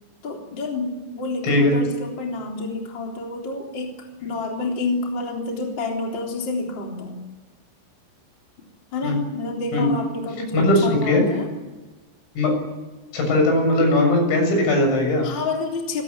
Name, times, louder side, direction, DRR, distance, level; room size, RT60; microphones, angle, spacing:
voice 1, 0.2-7.2 8.9-11.5 15.2-16.0, left 3 dB, 25° left, 1 dB, 3.5 m, -29 dB
voice 2, 1.4-1.8 9.0-9.2 9.7-9.9 10.5-11.2 12.4-12.5 13.1-15.3, left 1 dB, 75° left, 3 dB, 9.8 m, -19 dB
27.5 x 17.0 x 9.9 m, 1.2 s
omnidirectional pair, 5.9 m